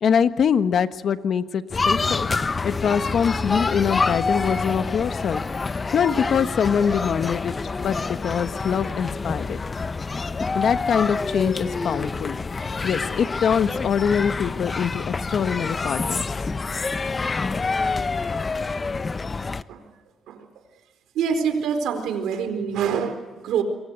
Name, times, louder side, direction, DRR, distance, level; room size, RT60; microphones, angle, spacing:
voice 1, 0.0-2.3 2.6-5.4 5.7-9.6 10.5-16.3, left 7 dB, 60° left, 11 dB, 1.3 m, -24 dB
sound 1, 1.7-19.6, left 4 dB, 30° left, 0.9 m, -27 dB
voice 2, 21.1-23.6, right 7 dB, 85° right, 8 dB, 4.4 m, -25 dB
26.5 x 23.0 x 8.1 m, 1.3 s
cardioid pair, 90°, 0 cm